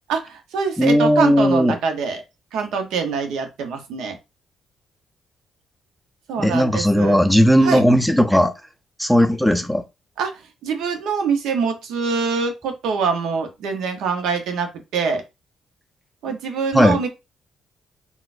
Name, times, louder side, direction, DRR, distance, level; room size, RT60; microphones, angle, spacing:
voice 1, 0.1-2.2 2.5-4.1 6.3-7.3 7.6-7.8 10.2-10.3 10.6-15.2 16.2-17.1, right 5 dB, 85° right, 0.7 m, -24 dB
voice 2, 0.8-1.8 6.4-8.5 9.0-9.8 16.7-17.0, equal, ahead, 0.5 m, -16 dB
4.0 x 2.2 x 2.5 m
cardioid pair, 90°, 0 cm